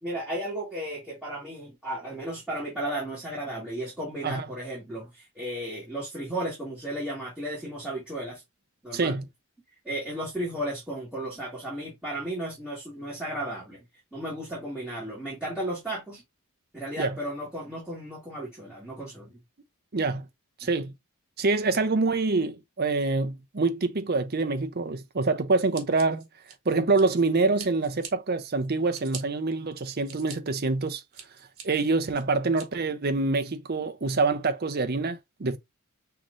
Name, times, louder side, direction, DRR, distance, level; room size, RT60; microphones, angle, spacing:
voice 1, 0.0-8.4 8.8-9.2 9.8-13.8 14.1-16.2 16.7-19.4, right 1 dB, 5° right, 1.9 m, -34 dB
voice 2, 8.9-9.2 17.0-17.2 19.9-20.3 20.6-20.9 21.4-26.3 26.7-31.0 31.6-35.6, right 3 dB, 45° right, 0.7 m, -26 dB
Scissors, 25.7-27.2 27.6-28.1 28.6-29.2 29.8-30.4 30.8-31.6 32.1-32.7, right 7 dB, 70° right, 1.8 m, -42 dB
5.7 x 3.1 x 2.6 m
head